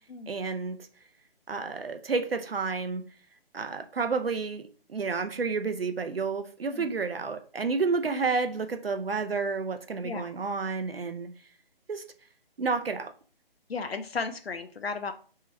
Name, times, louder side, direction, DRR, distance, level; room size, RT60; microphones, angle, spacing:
voice 1, 0.3-0.8 1.5-3.0 3.5-11.3 11.9-12.1 12.6-13.1, right 4 dB, 75° right, 8 dB, 0.5 m, -30 dB
voice 2, 13.7-15.1, left 4 dB, 80° left, 9 dB, 0.5 m, -34 dB
3.7 x 2.7 x 4.3 m, 0.41 s
figure-of-eight pair, 150°, 30 cm